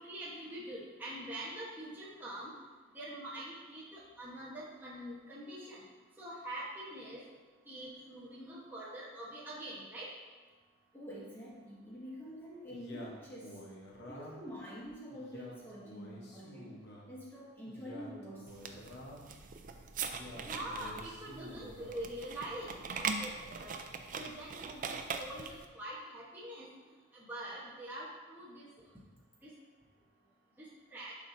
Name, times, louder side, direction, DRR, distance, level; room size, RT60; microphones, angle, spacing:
voice 1, 0.0-2.5 2.9-5.8 6.2-7.2 7.7-10.1 20.4-23.7 24.2-26.7 27.1-28.7 29.4-29.5 30.6-30.7 30.9-31.1, right 1 dB, 10° right, -8 dB, 1.1 m, -44 dB
voice 2, 10.9-13.6 14.1-19.0 27.1-27.2, equal, 10° left, -7 dB, 1.8 m, -47 dB
Male speech man speaking, 12.7-14.5 15.1-17.1 17.7-19.4 20.1-22.0, left 1 dB, 55° left, 1.1 m, -50 dB
sound 1, 18.5-25.7, right 5 dB, 40° right, 0.5 m, -41 dB
11.0 x 4.9 x 2.7 m, 1.3 s
head